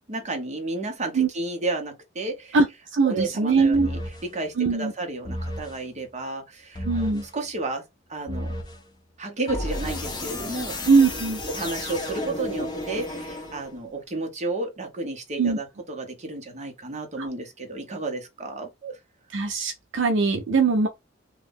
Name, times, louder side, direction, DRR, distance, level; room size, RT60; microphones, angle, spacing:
voice 1, 0.1-2.6 3.0-7.8 8.1-8.6 9.2-10.8 11.5-19.0, right 2 dB, 40° right, 0.9 m, -32 dB
voice 2, 2.9-3.9 4.6-4.9 6.8-7.2 10.9-11.4 15.4-15.6 17.2-17.3 19.3-20.9, right 4 dB, 70° right, 0.5 m, -21 dB
sound 1, 3.7-4.3 5.2-5.8 6.7-7.3 8.3-8.8 9.5-13.9, left 1 dB, 25° left, 0.8 m, -32 dB
2.6 x 2.4 x 3.5 m
head